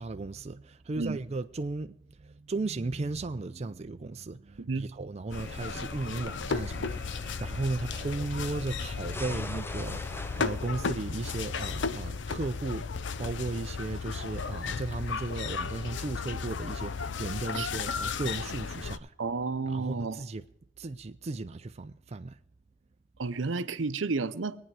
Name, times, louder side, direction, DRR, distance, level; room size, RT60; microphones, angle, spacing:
voice 1, 0.0-19.1 19.7-20.5 20.8-22.4, right 3 dB, 35° right, 0.5 m, -35 dB
voice 2, 4.6-4.9 17.6-17.7 19.2-20.2 23.2-24.6, right 4 dB, 85° right, 0.7 m, -31 dB
sound 1, 5.3-19.0, left 5 dB, 70° left, 0.6 m, -35 dB
sound 2, 5.3-12.1, left 1 dB, 10° left, 0.5 m, -43 dB
23.0 x 9.1 x 4.8 m
head